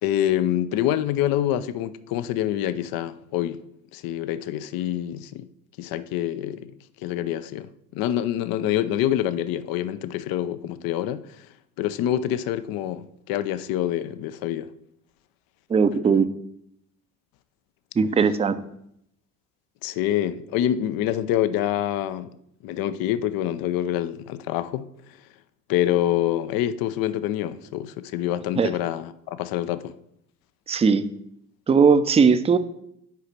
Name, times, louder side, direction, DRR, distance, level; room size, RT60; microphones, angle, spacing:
voice 1, 0.0-3.6 3.9-5.5 5.8-11.5 11.8-14.7 19.8-22.3 22.6-25.2 25.7-29.9, left 12 dB, 55° left, 0.5 m, -26 dB
voice 2, 15.7-16.3 18.0-18.6 28.6-28.7 30.7-31.0 31.7-32.6, right 5 dB, 15° right, 0.5 m, -18 dB
5.7 x 4.9 x 5.9 m
hypercardioid pair, 50°, 43 cm